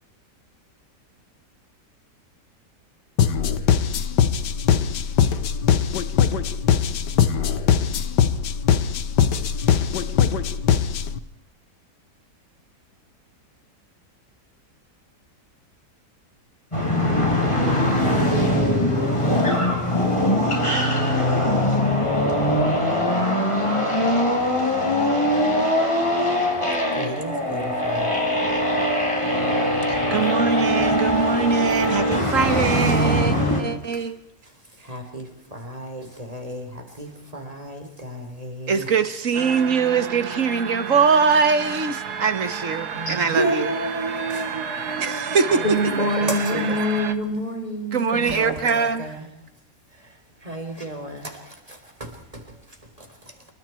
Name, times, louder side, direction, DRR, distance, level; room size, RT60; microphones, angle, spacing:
sound 1, 3.2-11.2, left 8 dB, 85° left, 1.7 m, -21 dB
sound 2, 16.7-33.6, left 1 dB, 15° left, 5.1 m, -21 dB
voice 1, 27.0-28.1 33.9-34.0 34.8-38.9 42.9-45.7 46.0-46.8 48.1-49.3 50.4-52.4 53.0-53.1, right 1 dB, 20° right, 5 dB, 3.8 m, -32 dB
voice 2, 29.9-34.1 38.7-43.7 45.0-45.8 47.9-49.2, right 5 dB, 50° right, 10 dB, 1.9 m, -22 dB
sound 3, 39.3-47.1, right 6 dB, 70° right, 1.9 m, -31 dB
voice 3, 45.6-48.3, equal, 35° left, 2 dB, 5.2 m, -25 dB
28.0 x 24.5 x 4.6 m, 0.78 s
omnidirectional pair, 1.8 m